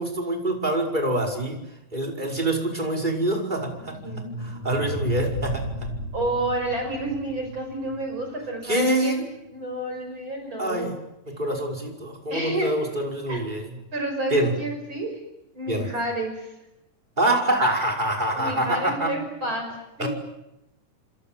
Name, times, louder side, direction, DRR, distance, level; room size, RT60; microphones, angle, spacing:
voice 1, 0.0-1.6 1.9-4.0 4.4-5.9 8.6-9.2 10.6-10.9 11.3-13.7 14.3-14.5 15.7-15.9 17.2-19.1 20.0-20.1, right 1 dB, 15° right, 0 dB, 5.5 m, -25 dB
sound 1, 3.6-8.7, equal, 40° left, 7.1 m, -34 dB
voice 2, 6.1-10.9 12.3-12.8 13.3-13.5 13.9-15.2 15.5-16.5 18.3-20.1, right 1 dB, 35° right, 3 dB, 6.7 m, -30 dB
28.5 x 26.0 x 7.8 m, 0.89 s
omnidirectional pair, 3.6 m